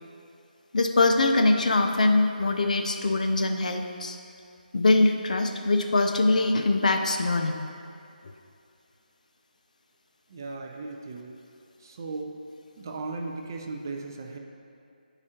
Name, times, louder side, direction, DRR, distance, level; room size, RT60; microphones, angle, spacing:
voice 1, 0.7-4.2 4.7-7.6, left 2 dB, 50° left, 5 dB, 0.5 m, -23 dB
voice 2, 10.3-11.4 11.8-12.4 12.8-14.4, right 3 dB, 25° right, 2 dB, 0.3 m, -36 dB
9.6 x 4.9 x 2.8 m, 2.5 s
figure-of-eight pair, 170°, 5 cm